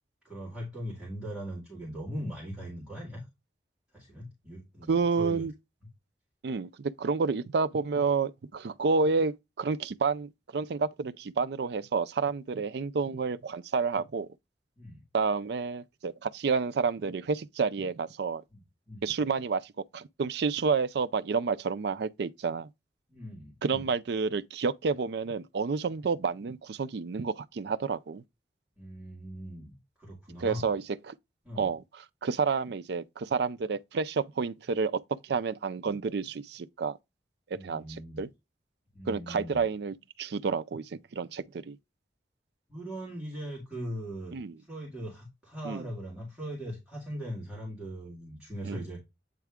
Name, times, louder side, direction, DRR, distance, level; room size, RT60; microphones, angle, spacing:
voice 1, 0.2-3.2 3.9-5.5 14.8-15.0 18.5-19.1 23.1-23.8 28.8-30.7 31.4-31.7 37.5-38.2 38.9-39.6 42.7-49.0, equal, 5° right, 2.1 m, -40 dB
voice 2, 4.9-5.5 6.4-14.3 15.1-18.4 19.0-22.7 23.6-28.2 30.4-31.2 31.6-37.0 37.5-38.3 39.1-41.8 44.3-44.6 45.6-45.9 48.6-48.8, right 5 dB, 65° right, 0.4 m, -30 dB
8.3 x 3.4 x 3.5 m
head